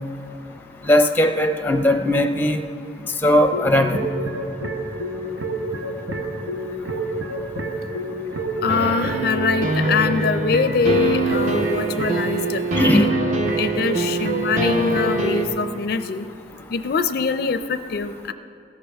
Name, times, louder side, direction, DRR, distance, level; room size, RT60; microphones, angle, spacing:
voice 1, 0.8-2.6 3.2-4.1 12.8-13.1, left 1 dB, 10° left, 6 dB, 0.6 m, -18 dB
sound 1, 3.5-15.3, right 2 dB, 85° right, 1.3 m, -29 dB
voice 2, 8.6-12.6 12.9-13.1 13.6-16.2 16.7-18.3, left 5 dB, 55° left, 10 dB, 0.4 m, -23 dB
sound 2, 8.7-15.4, right 2 dB, 40° right, 1.1 m, -24 dB
16.5 x 14.0 x 3.4 m, 2.9 s
head